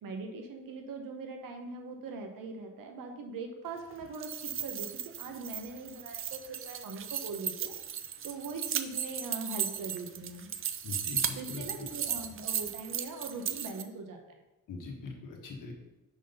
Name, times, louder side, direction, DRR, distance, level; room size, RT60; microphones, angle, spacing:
voice 1, 0.0-4.9 5.2-7.7 8.2-10.5 11.3-14.4, right 3 dB, 80° right, 4 dB, 1.1 m, -41 dB
sound 1, 4.0-13.8, right 8 dB, 40° right, 0.4 m, -36 dB
voice 2, 10.8-11.6 14.7-15.7, left 3 dB, 70° left, 0 dB, 1.5 m, -41 dB
6.2 x 4.0 x 5.4 m, 1.0 s
cardioid pair, 145°, 33 cm